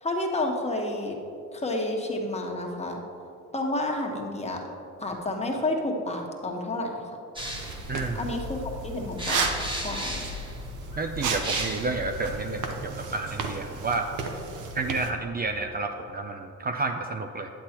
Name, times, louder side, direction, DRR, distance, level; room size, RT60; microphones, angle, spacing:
voice 1, 0.0-1.2 1.5-3.0 3.5-4.7 5.0-7.0 8.1-9.5 9.7-10.3, left 1 dB, 20° left, 0 dB, 1.2 m, -30 dB
sound 1, 7.4-12.9, left 1 dB, 15° right, 1.4 m, -36 dB
sound 2, 7.4-15.1, right 5 dB, 80° right, 0.8 m, -34 dB
voice 2, 7.9-8.3 11.0-14.1 14.7-17.5, right 3 dB, 30° right, 6 dB, 0.4 m, -30 dB
10.0 x 7.9 x 2.9 m, 2.7 s
cardioid pair, 90°, 30 cm